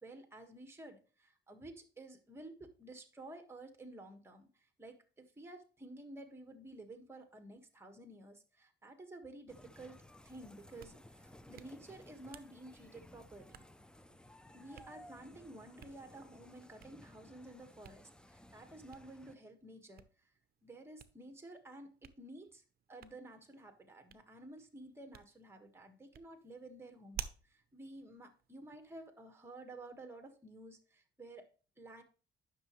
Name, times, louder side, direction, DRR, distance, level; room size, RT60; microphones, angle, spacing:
voice 1, 0.0-13.6 14.5-20.3 20.6-32.0, right 2 dB, 10° right, 1.6 m, -52 dB
sound 1, 9.5-19.3, left 1 dB, 5° left, 0.6 m, -58 dB
Hands, 10.6-29.1, right 8 dB, 50° right, 0.6 m, -56 dB
10.5 x 6.1 x 3.1 m
cardioid pair, 90°, 20 cm